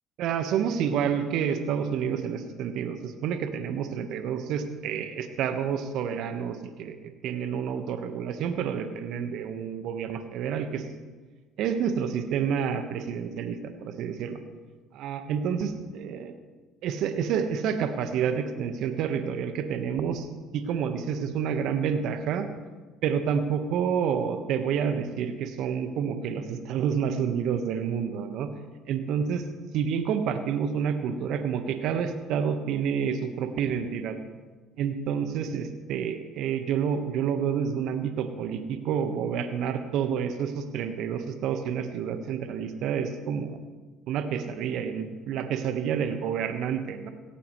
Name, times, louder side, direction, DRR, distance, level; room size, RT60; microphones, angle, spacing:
voice 1, 0.2-10.8 11.6-14.4 14.9-16.3 16.8-20.3 20.5-22.5 23.0-28.5 28.9-29.4 29.7-34.1 34.8-43.6 44.1-47.1, right 7 dB, 60° right, 8 dB, 1.4 m, -29 dB
17.5 x 17.0 x 3.3 m, 1.4 s
hypercardioid pair, 60°, 0 cm